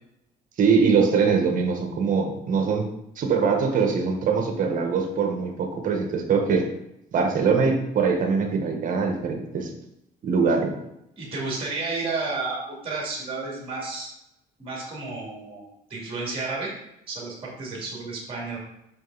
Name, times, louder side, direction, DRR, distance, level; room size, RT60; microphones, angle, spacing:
voice 1, 0.6-2.9 3.2-6.7 7.1-9.7 10.2-10.7, right 5 dB, 50° right, 4 dB, 1.2 m, -22 dB
voice 2, 11.2-12.6 12.8-14.1 14.6-15.6 15.9-16.7 17.1-18.6, right 3 dB, 30° right, -3 dB, 2.4 m, -31 dB
5.7 x 5.1 x 4.0 m, 0.84 s
cardioid pair, 110°, 17 cm